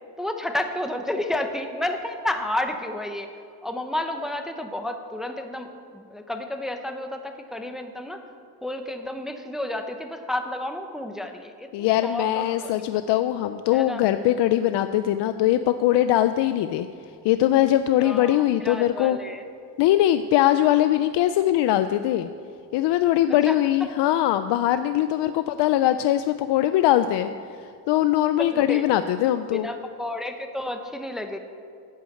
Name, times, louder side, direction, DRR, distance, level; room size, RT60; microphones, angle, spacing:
voice 1, 0.2-3.3 3.6-8.2 8.6-12.7 13.7-14.0 18.0-19.4 23.3-23.6 28.4-28.9 29.5-31.4, left 1 dB, ahead, 5 dB, 0.7 m, -31 dB
voice 2, 11.7-16.9 17.2-19.2 19.8-22.3 22.7-27.3 27.9-29.7, left 13 dB, 90° left, 10 dB, 0.5 m, -21 dB
11.5 x 8.3 x 7.8 m, 2.4 s
cardioid pair, 140°, 41 cm